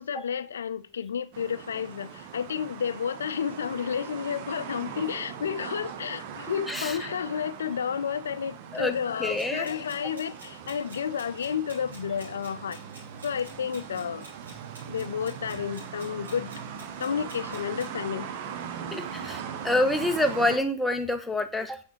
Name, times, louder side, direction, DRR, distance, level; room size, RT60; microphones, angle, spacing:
voice 1, 0.0-12.8 13.2-14.3 14.9-16.5 17.0-18.3 19.2-19.3, left 7 dB, 80° left, 0.4 m, -31 dB
sound 1, 1.3-20.6, right 7 dB, 55° right, 0.7 m, -40 dB
voice 2, 6.7-7.1 8.7-9.7 18.9-21.8, left 1 dB, 5° left, 0.7 m, -27 dB
sound 2, 9.3-17.9, right 1 dB, 90° right, 3.4 m, -51 dB
7.1 x 5.0 x 3.0 m
hypercardioid pair, 110°, 0 cm